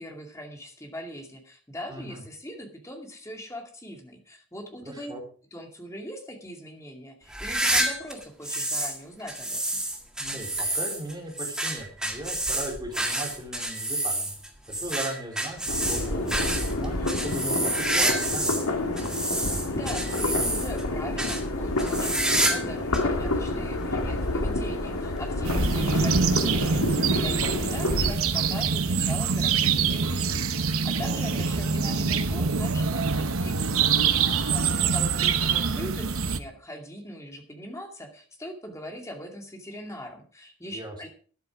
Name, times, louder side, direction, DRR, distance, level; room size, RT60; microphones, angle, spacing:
voice 1, 0.0-5.1 5.5-9.8 19.3-19.4 19.7-34.1 34.5-41.1, equal, 15° left, 3 dB, 2.4 m, -41 dB
voice 2, 1.9-2.2 4.8-5.2 10.2-14.3 14.7-18.6 25.3-25.6 31.0-31.2 34.2-34.6 40.7-41.1, right 1 dB, 20° right, 0 dB, 4.1 m, -38 dB
sound 1, 7.3-9.0 9.3-18.7 19.0-20.8 21.2-21.4 21.8-22.7 22.9-23.0 23.8-23.9 25.2-25.3, right 1 dB, 5° right, 1.8 m, -28 dB
sound 2, 15.7-28.1, left 2 dB, 80° left, 2.3 m, -28 dB
sound 3, 25.4-36.4, right 5 dB, 75° right, 1.1 m, -25 dB
13.0 x 10.5 x 4.9 m, 0.42 s
head